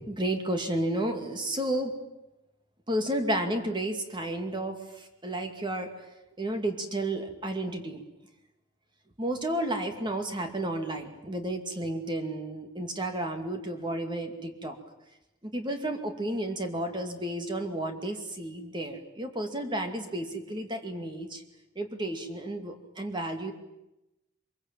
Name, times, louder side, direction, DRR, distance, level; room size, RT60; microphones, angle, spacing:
voice 1, 0.0-1.9 2.9-6.0 6.4-8.0 9.2-14.8 15.4-21.4 21.8-23.5, right 1 dB, 25° right, 5 dB, 2.5 m, -32 dB
24.0 x 22.5 x 9.1 m, 0.94 s
head